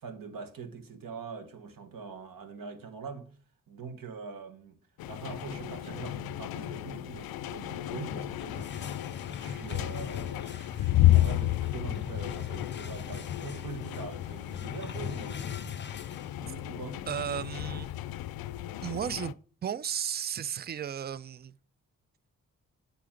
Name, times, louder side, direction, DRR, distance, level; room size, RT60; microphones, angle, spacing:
voice 1, 0.0-3.3 3.7-4.8 5.1-15.5 16.4-17.1, right 5 dB, 65° right, 1.5 m, -43 dB
sound 1, 5.0-19.3, left 14 dB, 75° left, 0.5 m, -32 dB
sound 2, 8.3-16.8, left 7 dB, 30° left, 0.6 m, -42 dB
voice 2, 17.1-17.9 18.8-21.6, right 9 dB, 30° right, 0.4 m, -34 dB
8.3 x 6.0 x 3.8 m
supercardioid pair, 40°, 36 cm